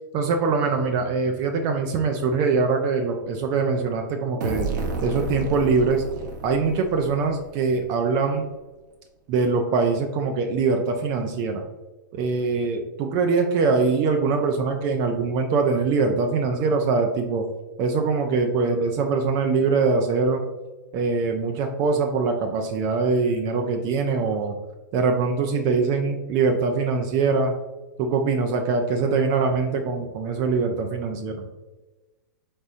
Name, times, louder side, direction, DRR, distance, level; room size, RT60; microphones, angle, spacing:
voice 1, 0.1-4.7 5.0-6.0 6.4-8.5 9.3-11.6 12.1-17.5 17.8-20.4 20.9-24.5 24.9-27.6 28.0-31.4, right 4 dB, 40° right, 4 dB, 0.4 m, -23 dB
sound 1, 4.4-8.1, right 3 dB, 65° right, 0.8 m, -31 dB
4.0 x 3.5 x 2.5 m, 1.1 s
hypercardioid pair, 110°, 11 cm